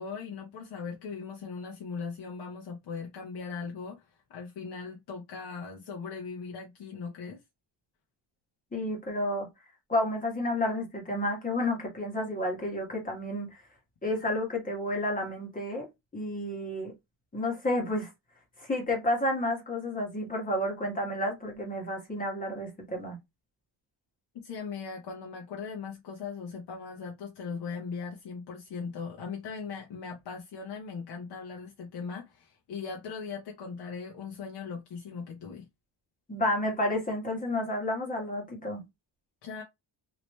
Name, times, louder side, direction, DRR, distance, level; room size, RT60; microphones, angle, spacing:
voice 1, 0.0-7.4 24.4-35.7 39.4-39.6, left 5 dB, 55° left, 0.9 m, -39 dB
voice 2, 8.7-9.5 9.9-13.5 14.0-15.9 16.1-16.9 17.3-18.1 18.6-23.2 36.3-38.8, left 1 dB, 15° left, 1.3 m, -31 dB
3.2 x 2.9 x 3.1 m
cardioid pair, 180°, 48 cm